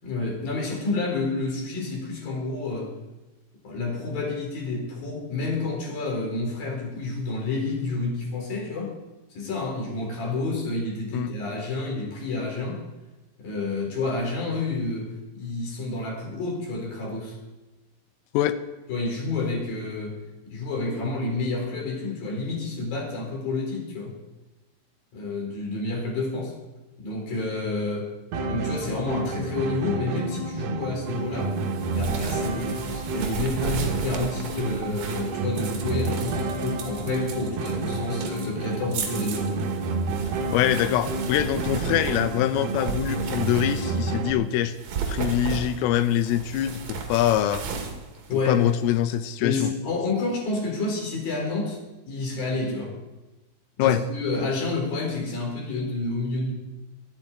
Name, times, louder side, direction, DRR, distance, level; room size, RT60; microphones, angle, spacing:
voice 1, 0.0-2.9 3.6-8.9 9.4-12.8 13.4-17.4 18.9-20.2 20.5-24.2 25.1-26.6 27.0-28.1 28.5-31.5 32.0-39.6 48.3-48.7 49.4-51.8 52.1-52.9 53.8-56.5, left 3 dB, 45° left, 0 dB, 5.6 m, -29 dB
sound 1, 28.3-44.3, right 3 dB, 70° right, 2.5 m, -30 dB
sound 2, 31.5-44.2 44.7-49.0, right 6 dB, 55° right, 2.9 m, -35 dB
voice 2, 40.5-44.7 45.1-47.6 48.5-49.7 53.8-54.0, left 11 dB, 80° left, 11 dB, 3.3 m, -24 dB
24.5 x 11.0 x 4.5 m, 1.1 s
omnidirectional pair, 6.0 m